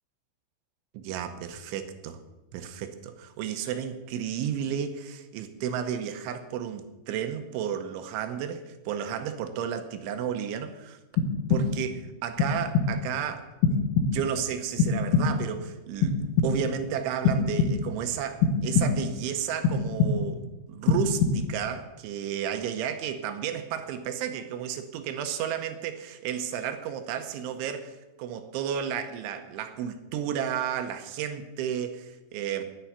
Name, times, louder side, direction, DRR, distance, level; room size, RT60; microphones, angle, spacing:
voice 1, 0.9-2.2 2.5-11.0 11.5-32.6, right 9 dB, 80° right, 8 dB, 3.1 m, -33 dB
sound 1, 11.2-12.0 12.4-13.1 13.6-14.4 14.8-15.6 16.0-16.8 17.3-18.0 18.4-19.2 19.6-20.5 20.9-21.7, left 5 dB, 85° left, 4.0 m, -25 dB
10.5 x 10.0 x 8.5 m, 1.1 s
omnidirectional pair, 5.7 m